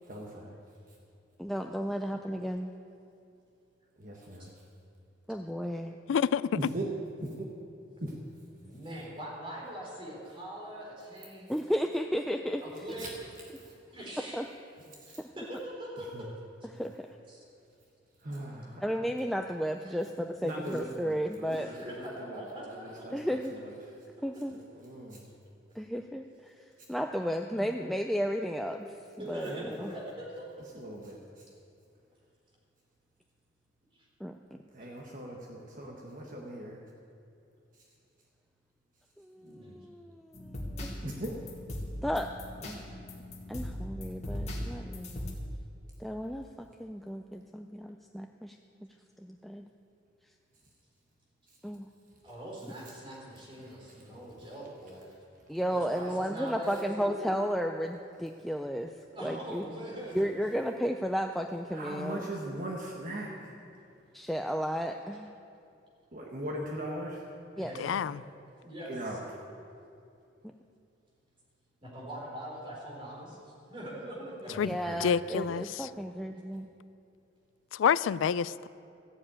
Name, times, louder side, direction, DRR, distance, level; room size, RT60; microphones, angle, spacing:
voice 1, 0.1-0.6 4.0-4.5 6.5-6.9 7.2-7.5 8.0-8.1 13.0-13.1 13.6-13.7 15.0-15.2 16.1-16.2 18.2-18.8 20.4-22.4 22.8-23.7 24.5-25.3 29.4-29.7 30.7-31.4 34.7-36.8 41.0-41.4 61.7-63.3 66.1-67.2 68.9-69.2 74.5-74.6 74.8-75.2, right 1 dB, 45° right, -1 dB, 1.3 m, -39 dB
voice 2, 1.4-2.7 5.3-6.0 11.5-12.6 14.3-14.4 15.2-15.3 16.7-17.1 18.8-21.7 23.1-23.6 24.2-24.6 25.8-26.5 26.9-28.9 29.3-29.9 34.2-34.6 39.2-41.1 42.0-42.3 42.6-42.9 43.5-45.4 46.0-48.6 49.2-49.7 51.6-51.9 55.5-58.9 59.2-59.6 60.1-62.2 64.1-65.3 67.6-67.7 74.6-76.7, equal, ahead, 3 dB, 0.3 m, -33 dB
voice 3, 6.1-6.4 67.8-68.2 74.6-74.7 75.0-75.9 77.7-78.7, left 7 dB, 90° left, 19 dB, 0.3 m, -28 dB
voice 4, 8.6-11.5 12.6-13.1 13.6-14.5 15.1-16.3 17.3-17.4 19.8-20.0 21.5-23.1 24.3-24.4 26.0-26.1 27.1-27.7 29.2-30.7 33.9-34.1 39.3-39.9 52.2-55.2 55.7-57.3 59.1-60.4 67.6-67.9 68.6-69.2 71.8-74.6, right 1 dB, 30° right, -3 dB, 3.8 m, -43 dB
sound 1, 40.3-45.3, left 1 dB, 35° left, 1.9 m, -39 dB
14.0 x 7.4 x 8.7 m, 2.6 s
head